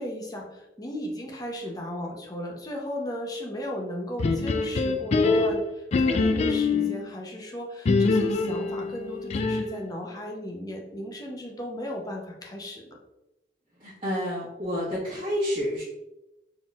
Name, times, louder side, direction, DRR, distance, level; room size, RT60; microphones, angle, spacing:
voice 1, 0.0-13.0, equal, 20° left, 0 dB, 0.7 m, -35 dB
sound 1, 4.2-7.0 7.9-9.8, left 3 dB, 40° left, 0.3 m, -24 dB
voice 2, 13.8-15.8, equal, 35° right, -11 dB, 1.4 m, -29 dB
4.3 x 3.9 x 2.4 m, 0.96 s
head